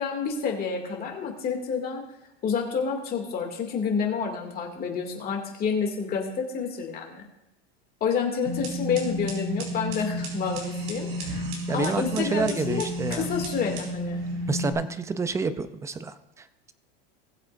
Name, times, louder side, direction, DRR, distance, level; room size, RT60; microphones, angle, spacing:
voice 1, 0.0-2.1 2.4-7.2 8.0-11.4 11.7-14.2, left 6 dB, 30° left, 1 dB, 2.4 m, -29 dB
sound 1, 8.4-14.7, left 1 dB, 70° right, 4.2 m, -32 dB
voice 2, 11.7-13.3 14.5-16.7, right 4 dB, 10° right, 12 dB, 0.5 m, -29 dB
19.5 x 7.9 x 2.6 m, 0.88 s
supercardioid pair, 145°, 30 cm